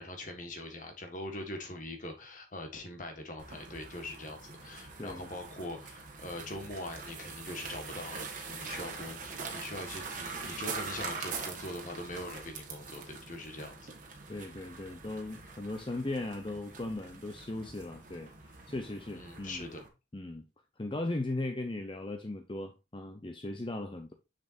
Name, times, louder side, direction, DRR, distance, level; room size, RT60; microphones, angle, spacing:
voice 1, 0.0-13.9 19.1-19.8, left 1 dB, 45° left, 1.4 m, -42 dB
sound 1, 3.4-19.9, right 4 dB, 45° right, 1.5 m, -43 dB
voice 2, 14.3-19.7 20.1-20.4 20.8-24.1, left 2 dB, 25° left, 0.6 m, -38 dB
6.7 x 6.6 x 2.5 m
head